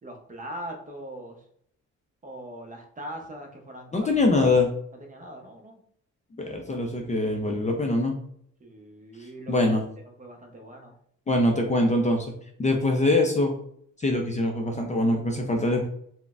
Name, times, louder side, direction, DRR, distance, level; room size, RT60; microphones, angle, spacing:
voice 1, 0.0-1.4 2.2-4.1 4.3-4.5 5.0-5.8 8.6-9.8 10.2-11.0, right 1 dB, 25° right, 2 dB, 0.7 m, -41 dB
voice 2, 3.9-4.7 6.4-8.2 9.5-9.8 11.3-12.3 12.6-13.5 14.0-15.9, left 2 dB, 25° left, 2 dB, 0.5 m, -23 dB
3.7 x 2.1 x 2.4 m, 0.66 s
cardioid pair, 90°, 30 cm